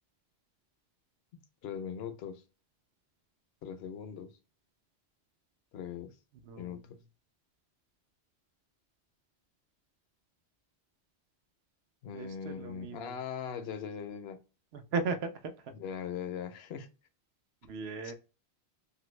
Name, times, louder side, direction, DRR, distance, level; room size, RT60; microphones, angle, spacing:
voice 1, 1.6-2.4 3.6-4.4 5.7-6.2 6.6-7.0 12.0-14.4 15.7-16.9, left 7 dB, 70° left, 0.8 m, -40 dB
voice 2, 6.4-6.8 12.1-13.2 14.7-15.7 17.7-18.1, right 4 dB, 75° right, 0.8 m, -37 dB
2.9 x 2.5 x 3.1 m
omnidirectional pair, 1.1 m